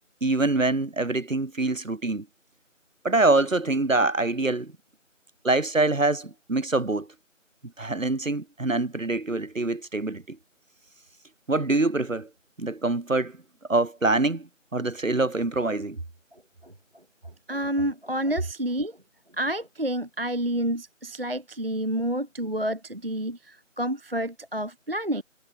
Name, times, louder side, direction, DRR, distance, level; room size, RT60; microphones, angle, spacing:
voice 1, 0.2-2.3 3.0-4.7 5.4-7.1 7.8-10.4 11.5-12.3 12.6-13.4 13.7-16.0, right 2 dB, 75° right, 1.9 m, -25 dB
voice 2, 17.5-19.0 19.4-25.2, right 1 dB, 50° right, 0.5 m, -29 dB
figure-of-eight pair, 175°, 39 cm